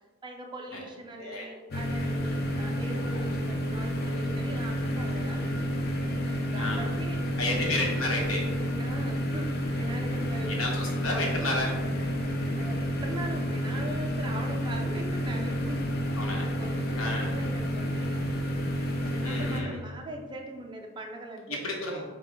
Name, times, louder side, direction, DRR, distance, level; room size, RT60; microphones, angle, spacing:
voice 1, 0.2-5.5 6.5-7.8 8.8-10.6 12.6-15.9 16.4-18.2 19.1-21.6, right 1 dB, 20° right, 1 dB, 0.5 m, -41 dB
voice 2, 1.2-1.5 3.1-3.2 6.6-6.9 7.4-8.5 10.4-11.8 16.2-16.5 17.0-17.3 19.2-19.8 21.5-22.0, left 2 dB, 75° left, 0 dB, 1.1 m, -31 dB
sound 1, 1.7-19.6, equal, 50° left, 0.5 m, -30 dB
5.4 x 2.2 x 3.9 m, 1.3 s
head